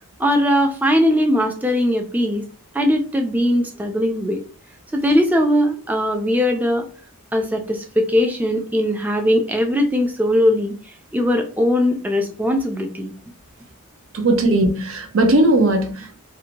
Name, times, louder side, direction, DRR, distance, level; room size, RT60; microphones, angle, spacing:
voice 1, 0.2-2.4 2.7-4.4 4.9-6.9 7.3-10.7 11.1-13.1, equal, 5° right, 0.3 m, -19 dB
voice 2, 14.1-16.2, right 1 dB, 65° right, 0.6 m, -18 dB
2.6 x 2.1 x 2.8 m
head